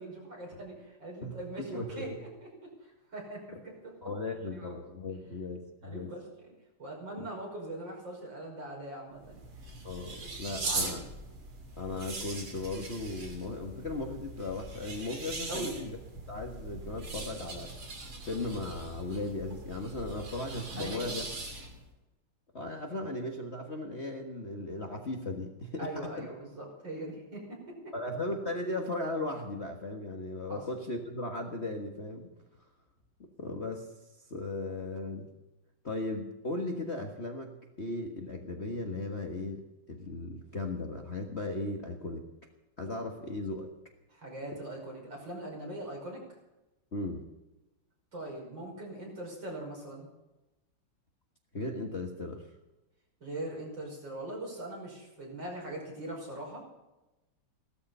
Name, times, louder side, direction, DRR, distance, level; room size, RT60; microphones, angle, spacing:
voice 1, 0.0-3.9 4.5-4.7 5.8-6.5 6.8-9.4 10.2-11.0 15.5-15.8 20.8-21.2 25.8-27.9 30.5-30.6 44.1-46.2 48.1-50.1 53.2-56.6, right 1 dB, 55° right, -1 dB, 6.3 m, -41 dB
voice 2, 1.2-2.2 4.0-6.1 7.2-7.3 9.8-11.0 11.8-16.0 16.3-17.7 18.2-21.3 22.5-25.9 26.2-26.3 27.9-32.3 33.4-33.9 34.3-35.3 35.8-39.6 39.9-42.3 42.8-43.7 46.9-47.2 51.5-52.5, left 2 dB, 35° left, 2 dB, 1.6 m, -37 dB
sound 1, 9.1-21.9, right 2 dB, 70° right, 3.8 m, -41 dB
16.5 x 13.5 x 5.5 m, 1.0 s
omnidirectional pair, 2.4 m